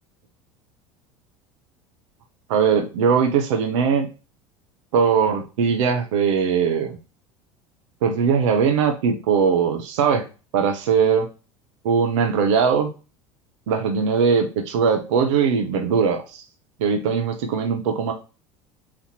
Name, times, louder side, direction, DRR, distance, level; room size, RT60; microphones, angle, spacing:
voice 1, 2.5-4.1 4.9-7.0 8.0-10.2 10.5-11.3 11.8-12.9 13.7-16.4 16.8-18.1, right 6 dB, 75° right, 5 dB, 0.8 m, -20 dB
4.2 x 2.9 x 4.2 m, 0.32 s
hypercardioid pair, 80°, 16 cm